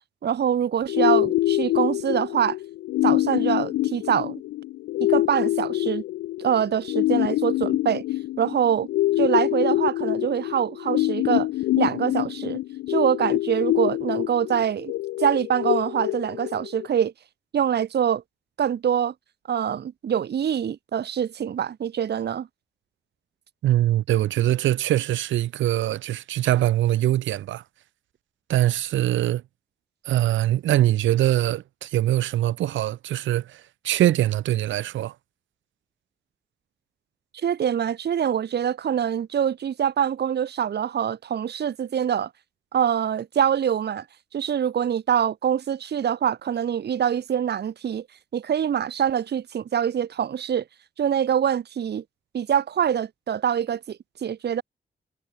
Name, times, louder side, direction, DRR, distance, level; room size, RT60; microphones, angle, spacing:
voice 1, 0.2-2.6 3.0-4.3 5.0-6.0 6.4-8.0 8.4-8.9 9.2-11.5 11.8-12.6 12.9-14.9 15.2-17.1 17.5-18.2 18.6-19.1 19.5-22.5 37.3-42.3 42.7-44.1 44.3-48.1 48.3-50.6 51.0-52.0 52.3-54.6, right 9 dB, 60° right, 0.9 m, -24 dB
sound 1, 0.9-16.9, left 16 dB, 90° left, 0.5 m, -25 dB
voice 2, 23.6-27.6 28.5-29.4 30.0-35.1, right 13 dB, 85° right, 1.0 m, -23 dB
supercardioid pair, 45°, 19 cm